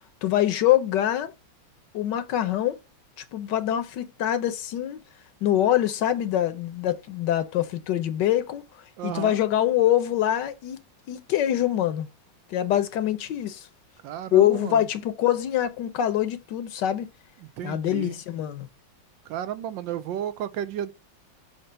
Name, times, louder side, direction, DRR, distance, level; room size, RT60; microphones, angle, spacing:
voice 1, 0.2-1.3 1.9-2.8 3.3-5.0 5.4-8.6 9.0-10.8 11.1-12.1 12.5-13.7 14.3-17.1 17.6-18.7, left 11 dB, 70° left, 1.2 m, -24 dB
voice 2, 9.0-9.4 14.0-14.9 17.4-18.2 19.3-20.9, right 10 dB, 80° right, 1.3 m, -33 dB
6.7 x 2.8 x 5.5 m
omnidirectional pair, 2.2 m